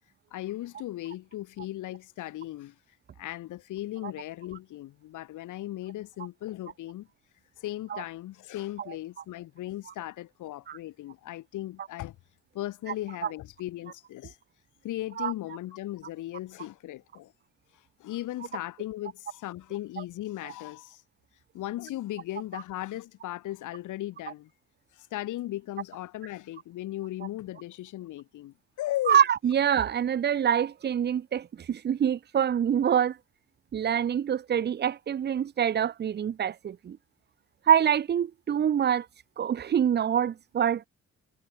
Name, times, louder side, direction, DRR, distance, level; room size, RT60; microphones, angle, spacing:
voice 1, 0.3-2.8 3.2-7.1 7.6-12.2 12.5-14.4 14.8-17.3 17.7-21.0 21.5-24.5 24.9-29.2, left 15 dB, 85° left, 2.0 m, -37 dB
voice 2, 29.1-33.2 33.7-37.0 37.7-39.1 39.4-40.9, right 9 dB, 35° right, 0.5 m, -25 dB
cardioid pair, 90°, 30 cm